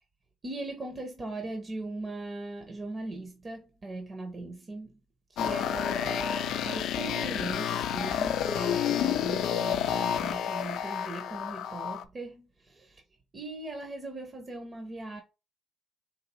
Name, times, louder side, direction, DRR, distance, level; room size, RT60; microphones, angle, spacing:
voice 1, 0.4-5.0 5.3-13.0 13.3-15.2, right 2 dB, 35° right, 0.9 m, -39 dB
sound 1, 5.4-12.0, left 9 dB, 80° left, 0.4 m, -30 dB
4.1 x 2.5 x 4.0 m
cardioid pair, 90°, 0 cm